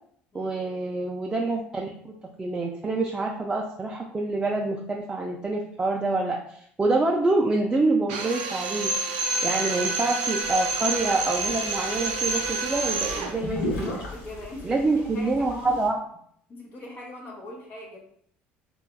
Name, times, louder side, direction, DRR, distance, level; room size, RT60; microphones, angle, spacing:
voice 1, 0.3-9.0 9.4-13.7 14.6-16.0, right 2 dB, 20° right, -1 dB, 0.3 m, -26 dB
Drill, 8.1-13.4, right 3 dB, 90° right, 0.4 m, -28 dB
sound 1, 10.4-15.9, left 1 dB, 80° left, 0.8 m, -37 dB
voice 2, 13.6-14.8 15.1-15.8 16.5-18.0, left 1 dB, 45° left, -2 dB, 0.8 m, -41 dB
3.3 x 2.3 x 2.2 m, 0.65 s
supercardioid pair, 95°, 5 cm